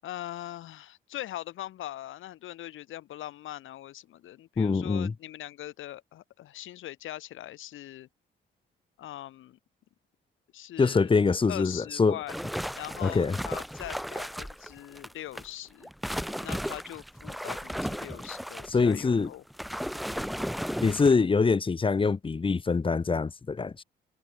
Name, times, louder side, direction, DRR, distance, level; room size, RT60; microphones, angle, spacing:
voice 1, 0.0-8.1 9.0-9.6 10.5-11.1 11.5-12.4 12.8-15.9 16.4-19.4, left 13 dB, 80° left, 8.0 m, -41 dB
voice 2, 4.6-5.1 10.8-12.2 13.0-13.4 18.7-19.3 20.8-23.8, left 4 dB, 25° left, 1.3 m, -24 dB
sound 1, 12.3-15.5 15.8-21.2, equal, ahead, 1.0 m, -35 dB
cardioid pair, 90°, 20 cm